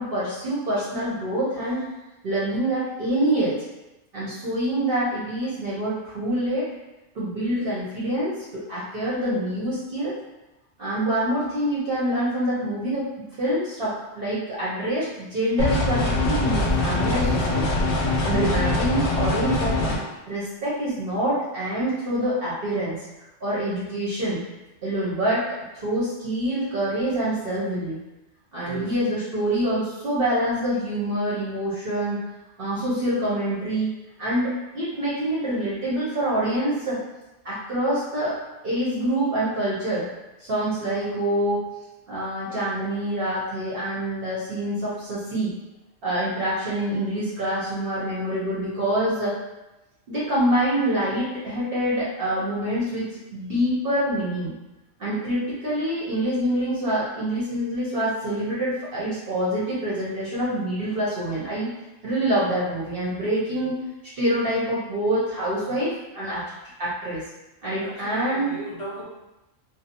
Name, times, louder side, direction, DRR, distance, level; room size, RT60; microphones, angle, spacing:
voice 1, 0.0-1.8 2.2-3.6 4.1-6.7 7.1-10.2 10.8-13.1 13.4-17.9 18.2-19.9 20.3-23.0 23.4-24.4 24.8-25.4 25.7-28.0 28.5-32.2 32.6-33.9 34.2-37.0 37.4-38.4 38.6-40.1 40.4-41.6 42.1-45.6 46.0-49.4 50.1-54.5 55.0-61.7 62.0-63.8 64.2-66.4 66.8-67.2 67.6-68.6, right 1 dB, 55° right, -8 dB, 0.7 m, -26 dB
sound 1, 15.6-20.0, left 2 dB, 80° left, 1.0 m, -23 dB
voice 2, 67.8-69.0, right 2 dB, 35° left, -7 dB, 0.5 m, -36 dB
2.6 x 2.0 x 2.7 m, 1.0 s
omnidirectional pair, 1.4 m